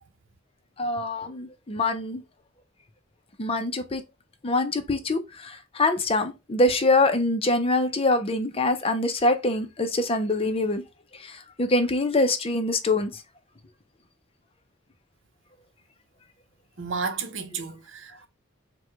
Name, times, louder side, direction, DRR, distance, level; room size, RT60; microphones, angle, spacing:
voice 1, 0.8-2.2 3.4-4.0 4.4-10.8 11.2-13.2, left 2 dB, 30° left, 0.6 m, -24 dB
voice 2, 16.8-18.3, right 5 dB, 65° right, 0.8 m, -32 dB
4.7 x 2.3 x 4.6 m
head